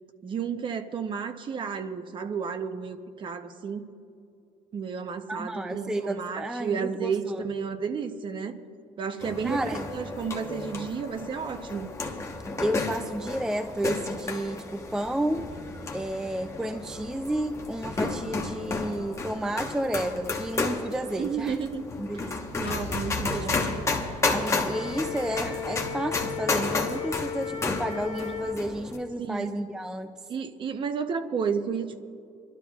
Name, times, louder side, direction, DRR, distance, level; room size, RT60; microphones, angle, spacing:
voice 1, 0.2-3.9 4.7-8.6 9.0-11.9 21.1-21.8 22.1-24.3 29.2-29.5 30.3-32.0, right 6 dB, 35° right, 8 dB, 0.7 m, -32 dB
voice 2, 5.3-7.4 9.4-9.9 12.6-15.5 15.9-21.6 22.0-22.3 23.2-23.5 24.3-30.1, right 1 dB, 5° right, 7 dB, 0.3 m, -31 dB
sound 1, 9.2-29.0, left 3 dB, 20° left, 1.0 m, -32 dB
sound 2, 22.7-25.0, left 10 dB, 45° left, 0.5 m, -40 dB
Wind instrument woodwind instrument, 24.7-28.6, left 8 dB, 70° left, 1.6 m, -36 dB
27.5 x 12.0 x 2.4 m, 2.5 s
cardioid pair, 160°, 14 cm